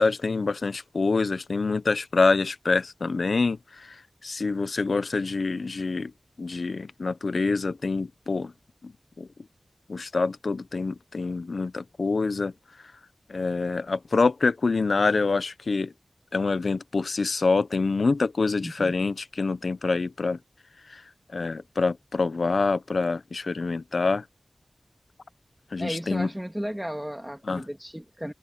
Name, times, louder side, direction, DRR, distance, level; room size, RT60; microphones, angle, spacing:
voice 1, 0.0-3.9 4.2-6.1 6.4-8.5 8.8-8.9 9.2-9.3 9.9-12.5 13.3-15.9 16.3-20.4 20.9-21.0 21.3-24.2 25.7-26.3 27.5-27.6, left 3 dB, 85° left, 0.8 m, -26 dB
voice 2, 18.6-18.9 25.8-28.3, equal, 5° right, 2.4 m, -34 dB
open air
wide cardioid pair, 50°, 0 cm